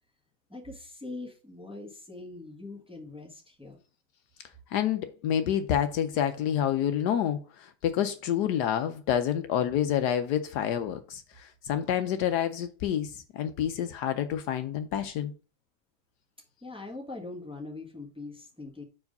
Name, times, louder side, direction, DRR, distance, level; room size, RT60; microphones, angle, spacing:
voice 1, 0.5-3.8 16.6-18.8, left 2 dB, 5° right, 1.4 m, -42 dB
voice 2, 4.7-15.3, left 9 dB, 70° left, 1.2 m, -28 dB
5.5 x 4.8 x 5.3 m
omnidirectional pair, 1.9 m